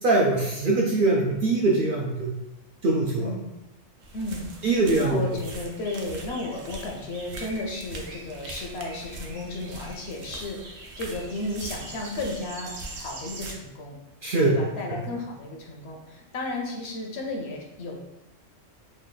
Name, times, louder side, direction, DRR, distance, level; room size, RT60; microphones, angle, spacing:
voice 1, 0.0-2.3 2.8-3.3 4.6-5.2 14.2-14.5, right 2 dB, 60° right, -2 dB, 0.6 m, -22 dB
sound 1, 4.0-13.5, right 2 dB, 85° right, 1.0 m, -41 dB
voice 2, 4.1-4.5 5.0-14.0 14.5-18.0, left 2 dB, 65° left, 0 dB, 0.8 m, -34 dB
3.2 x 2.3 x 3.8 m, 0.93 s
omnidirectional pair, 1.3 m